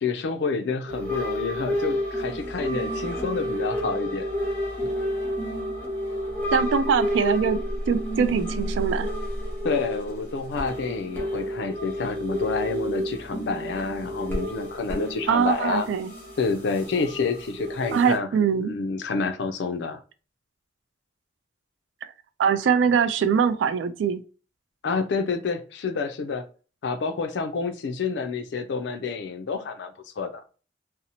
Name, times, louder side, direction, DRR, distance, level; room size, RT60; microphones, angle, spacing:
voice 1, 0.0-4.3 4.8-4.9 9.6-15.9 16.4-18.3 18.6-20.0 24.8-26.4 26.8-30.4, left 4 dB, 70° left, 0.4 m, -28 dB
sound 1, 0.9-18.2, equal, 10° left, 0.7 m, -30 dB
voice 2, 6.5-7.6 7.9-9.1 15.3-16.1 17.9-18.8 22.4-24.2, right 6 dB, 85° right, 0.3 m, -22 dB
2.6 x 2.0 x 2.8 m
head